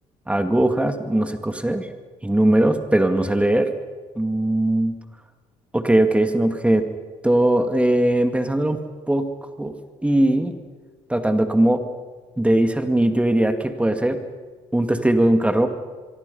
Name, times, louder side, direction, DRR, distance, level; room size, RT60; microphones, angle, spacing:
voice 1, 0.3-1.9 2.2-3.7 4.2-5.0 5.7-6.9 7.2-8.8 9.1-9.3 9.6-9.8 10.0-10.6 11.1-11.8 12.4-14.2 14.7-15.7, right 1 dB, 10° right, 7 dB, 2.3 m, -19 dB
24.5 x 23.5 x 5.6 m, 1.4 s
supercardioid pair, 65°, 14 cm